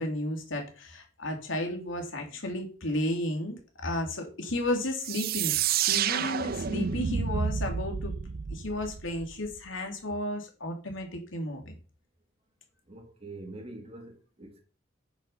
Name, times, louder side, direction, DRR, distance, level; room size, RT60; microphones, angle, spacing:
voice 1, 0.0-8.1 8.5-11.8, left 1 dB, 80° left, 3.0 m, -33 dB
sound 1, 5.0-9.6, right 8 dB, 50° right, 0.5 m, -30 dB
voice 2, 12.9-14.6, right 2 dB, 30° right, 3.0 m, -44 dB
10.0 x 6.5 x 5.6 m
head